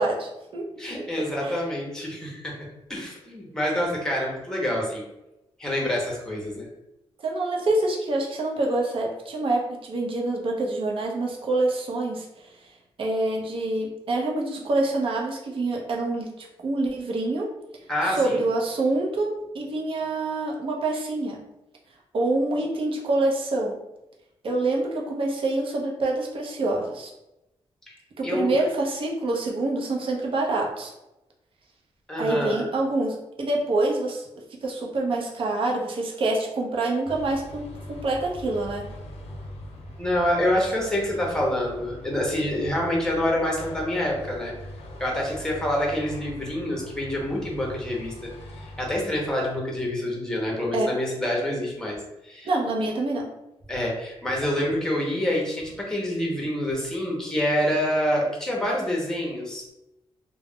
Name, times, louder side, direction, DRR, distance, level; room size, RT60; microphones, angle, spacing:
voice 1, 0.0-0.7 1.2-1.6 7.2-12.3 13.0-17.5 18.0-21.4 22.1-23.8 24.4-27.1 28.2-30.9 32.2-34.3 34.6-38.9 50.7-50.9 52.4-53.3, right 2 dB, 55° right, -1 dB, 0.6 m, -26 dB
voice 2, 0.8-2.5 2.9-5.0 5.6-6.7 17.9-18.4 27.9-28.0 28.2-28.5 32.1-32.7 40.0-44.5 45.0-48.1 48.6-52.0 52.2-52.5 53.7-59.6, left 1 dB, 5° left, -2 dB, 0.7 m, -27 dB
sound 1, 37.0-49.6, equal, 80° left, 0.5 m, -42 dB
2.3 x 2.0 x 3.5 m, 0.92 s
wide cardioid pair, 125°, 11 cm